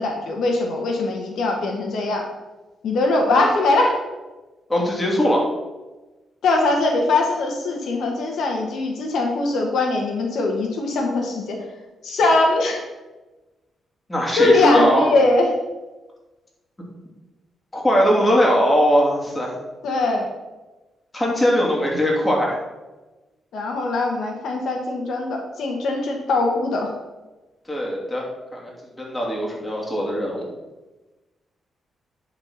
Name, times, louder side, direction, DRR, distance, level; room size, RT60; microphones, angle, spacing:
voice 1, 0.0-2.2 2.8-4.0 6.4-11.6 12.0-12.8 14.4-15.5 19.8-20.3 23.5-26.9, left 2 dB, 75° left, 2 dB, 1.3 m, -21 dB
voice 2, 4.7-5.5 14.1-15.2 17.7-19.6 21.1-22.6 27.7-28.2 28.5-28.7 29.0-30.5, equal, 15° left, -3 dB, 3.0 m, -20 dB
10.5 x 4.2 x 5.7 m, 1.1 s
cardioid pair, 90°, 0 cm